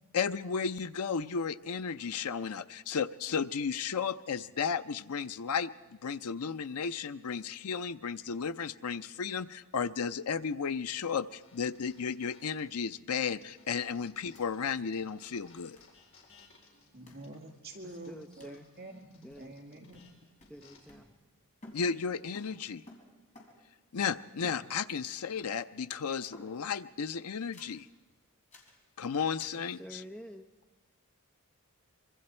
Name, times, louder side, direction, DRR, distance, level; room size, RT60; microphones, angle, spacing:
voice 1, 0.1-5.7 6.0-15.8 21.7-22.8 23.9-27.9 29.0-30.0, left 6 dB, 85° left, 12 dB, 0.6 m, -34 dB
sound 1, 11.4-14.6 14.9-20.8, left 4 dB, 60° left, 4.6 m, -62 dB
sound 2, 14.3-14.4 14.7-14.8 15.8-16.0 17.1-17.3 18.4-18.6 19.3-19.6 19.9-21.4 21.6-23.8 24.4-25.1 25.4-25.8 26.3-26.8 27.5-27.8 28.5-28.8 29.4-29.7, left 1 dB, 35° left, 3.5 m, -55 dB
voice 2, 16.9-20.1, right 1 dB, 45° right, 2 dB, 2.2 m, -47 dB
voice 3, 17.8-18.7 19.2-19.5 20.5-21.1 29.6-30.5, equal, 5° left, 5 dB, 0.7 m, -48 dB
25.0 x 23.5 x 4.4 m, 1.1 s
head